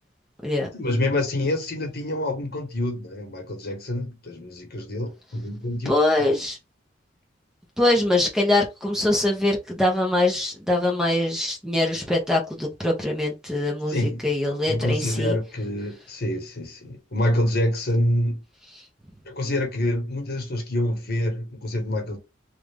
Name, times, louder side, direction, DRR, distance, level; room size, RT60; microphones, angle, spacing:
voice 1, 0.7-5.9 6.2-6.3 13.9-14.3 14.7-18.4 19.3-22.2, left 1 dB, 55° left, 1.2 m, -26 dB
voice 2, 5.8-6.6 7.8-15.3, left 1 dB, 5° right, 0.8 m, -23 dB
3.2 x 2.5 x 3.4 m
head